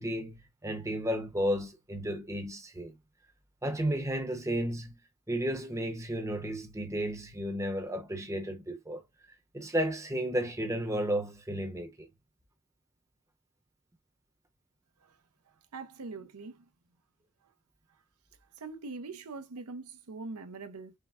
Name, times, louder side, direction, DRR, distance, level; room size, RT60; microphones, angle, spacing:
voice 1, 0.0-3.0 3.6-5.0 5.3-9.0 9.5-12.1, equal, 15° right, 0.7 m, -33 dB
voice 2, 15.7-16.6 18.6-20.9, right 3 dB, 90° right, 0.7 m, -42 dB
5.6 x 2.1 x 2.4 m
head